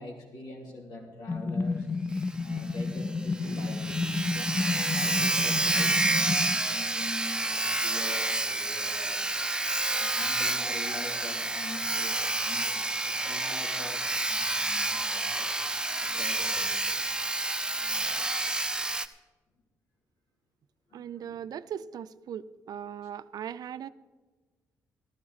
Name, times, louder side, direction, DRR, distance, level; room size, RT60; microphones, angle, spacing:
voice 1, 0.0-1.9 2.3-5.9 6.2-15.6 16.0-17.2 20.9-21.4, left 2 dB, 75° left, -1 dB, 3.2 m, -44 dB
sound 1, 1.3-6.6, left 3 dB, 35° left, 0.5 m, -31 dB
Sawing, 2.2-2.3 2.6-2.7 3.1-3.2 3.3-19.1, right 2 dB, 10° right, 0.7 m, -29 dB
voice 2, 20.9-23.9, right 9 dB, 65° right, 14 dB, 0.5 m, -39 dB
14.5 x 12.5 x 4.1 m, 1.3 s
supercardioid pair, 60°, 7 cm